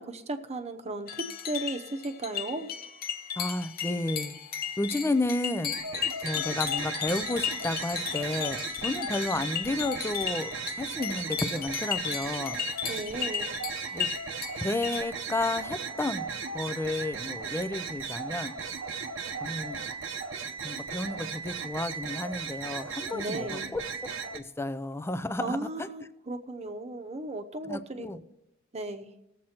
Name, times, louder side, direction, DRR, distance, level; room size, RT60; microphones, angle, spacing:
voice 1, 0.0-2.7 12.9-13.5 23.1-23.7 25.4-28.1 28.7-29.1, right 2 dB, 35° right, 0.9 m, -35 dB
sound 1, 1.1-15.0, left 9 dB, 50° left, 0.7 m, -35 dB
voice 2, 3.4-4.4 4.8-5.7 6.2-12.6 13.9-14.1 14.6-16.3 16.5-18.5 19.4-19.8 20.6-23.8 24.3-25.9 27.6-28.2, left 2 dB, 15° left, 0.4 m, -32 dB
sound 2, 5.7-24.4, right 5 dB, 80° right, 0.8 m, -36 dB
19.5 x 7.5 x 2.9 m
head